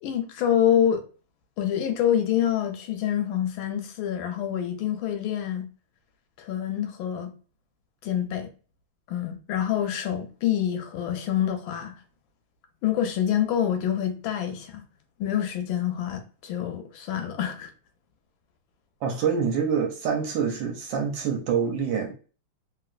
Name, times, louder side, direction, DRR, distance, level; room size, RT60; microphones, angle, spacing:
voice 1, 0.0-1.0 1.6-5.6 6.4-7.3 8.0-8.5 9.1-11.9 12.8-14.8 15.2-17.7, left 10 dB, 80° left, 1.4 m, -26 dB
voice 2, 19.0-22.1, right 6 dB, 75° right, 1.2 m, -26 dB
3.1 x 2.9 x 2.4 m
omnidirectional pair, 2.3 m